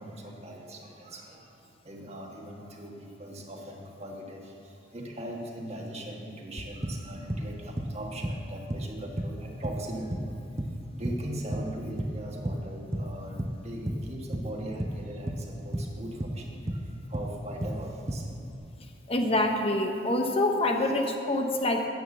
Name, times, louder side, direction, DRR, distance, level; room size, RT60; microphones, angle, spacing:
voice 1, 0.0-1.5 1.8-10.4 10.9-18.3, right 1 dB, 35° right, 0 dB, 1.5 m, -40 dB
sound 1, 6.8-7.5 7.8-8.0 8.2-8.9 9.2-10.3 10.6-11.3 11.5-12.2 12.4-12.7 12.9-13.6 13.9-15.0 15.3-16.4 16.7-17.8 18.1-18.6, right 1 dB, 15° right, 0.6 m, -32 dB
voice 2, 19.1-21.9, left 1 dB, 30° left, 3 dB, 0.8 m, -26 dB
9.4 x 8.8 x 7.0 m, 2.5 s
head